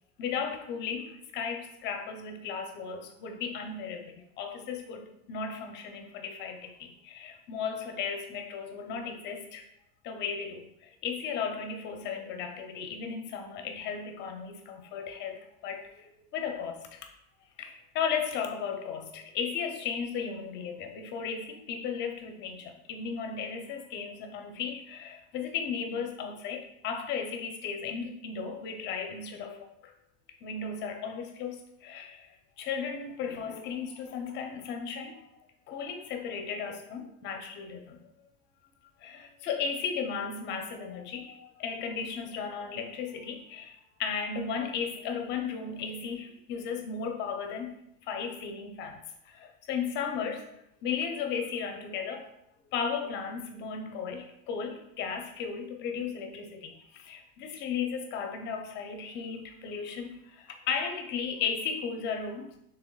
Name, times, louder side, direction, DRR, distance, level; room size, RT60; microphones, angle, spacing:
voice 1, 0.2-9.6 10.0-17.0 17.6-29.9 30.4-32.3 32.6-35.3 35.7-38.0 39.0-43.7 44.0-47.8 48.1-50.5 50.8-52.3 52.6-62.5, left 6 dB, 30° left, 4 dB, 0.5 m, -35 dB
6.2 x 3.3 x 2.2 m, 0.79 s
supercardioid pair, 150°, 37 cm